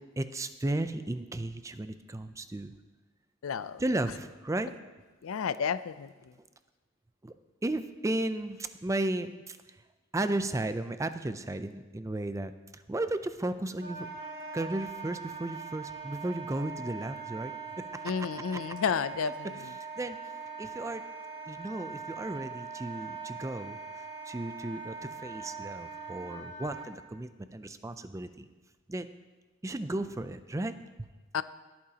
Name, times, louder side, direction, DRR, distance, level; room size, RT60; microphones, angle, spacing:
voice 1, 0.2-2.7 3.8-4.7 7.2-7.3 7.6-9.6 10.1-14.1 14.5-17.5 17.9-18.0 19.8-20.2 20.6-21.0 21.5-23.8 24.3-28.5 28.9-29.1 29.6-31.1, right 1 dB, 15° right, 10 dB, 0.4 m, -34 dB
voice 2, 3.4-3.8 5.2-6.3 18.0-19.7 31.3-31.4, left 6 dB, 90° left, 15 dB, 0.4 m, -32 dB
Wind instrument woodwind instrument, 13.8-26.9, right 5 dB, 50° right, 2.4 m, -42 dB
21.0 x 8.7 x 2.9 m, 1.2 s
head